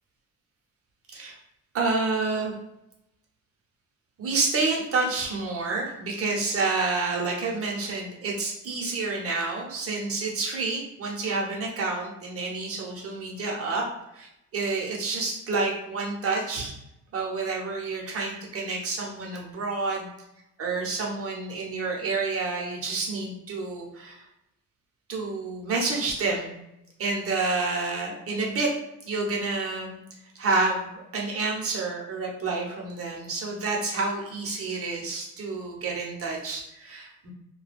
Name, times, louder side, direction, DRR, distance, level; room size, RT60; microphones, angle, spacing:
voice 1, 1.7-2.5 4.2-13.8 14.1-16.7 17.1-20.1 20.6-24.2 25.1-26.5 27.0-28.7 29.0-30.0 30.3-37.3, right 3 dB, 50° right, -1 dB, 0.9 m, -29 dB
2.3 x 2.3 x 3.3 m, 0.85 s
cardioid pair, 90°, 30 cm